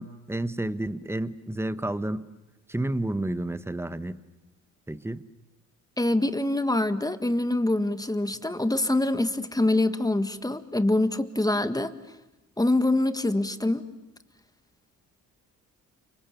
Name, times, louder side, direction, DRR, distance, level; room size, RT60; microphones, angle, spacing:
voice 1, 0.0-2.2 2.7-4.2 4.9-5.2, right 1 dB, 5° right, 13 dB, 1.2 m, -30 dB
voice 2, 6.0-11.9 12.6-13.8, left 2 dB, 10° left, 10 dB, 1.7 m, -25 dB
30.0 x 24.0 x 7.0 m, 0.98 s
hypercardioid pair, 55°, 37 cm